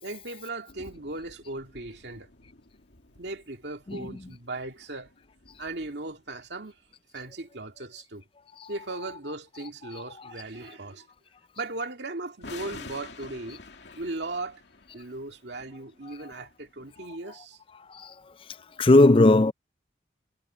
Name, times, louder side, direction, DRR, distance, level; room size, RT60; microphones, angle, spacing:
voice 1, 0.0-2.3 3.2-5.1 5.6-6.8 7.1-8.2 8.7-11.1 11.6-13.6 14.0-14.6 14.9-17.6, right 2 dB, 75° right, 2.1 m, -37 dB
sound 1, 0.7-6.9 12.4-17.0, left 3 dB, 75° left, 2.3 m, -49 dB
voice 2, 3.9-4.2 8.6-9.2 9.6-10.3 17.9-18.1 18.8-19.5, left 2 dB, 30° left, 0.4 m, -21 dB
head